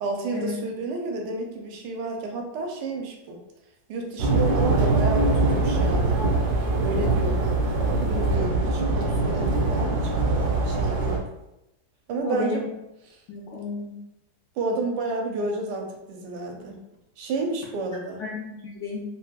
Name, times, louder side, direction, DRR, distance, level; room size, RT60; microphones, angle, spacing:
voice 1, 0.0-3.4 3.9-6.2 6.8-10.4 10.6-11.2 12.1-12.7 13.1-13.2 14.6-16.8 17.2-18.2, right 3 dB, 90° right, 1 dB, 1.3 m, -31 dB
sound 1, 4.2-11.2, right 2 dB, 70° right, 0.6 m, -23 dB
voice 2, 12.2-12.6 13.3-13.9 18.2-19.0, left 4 dB, 80° left, -5 dB, 0.6 m, -32 dB
4.5 x 2.0 x 2.2 m, 0.89 s
omnidirectional pair, 1.8 m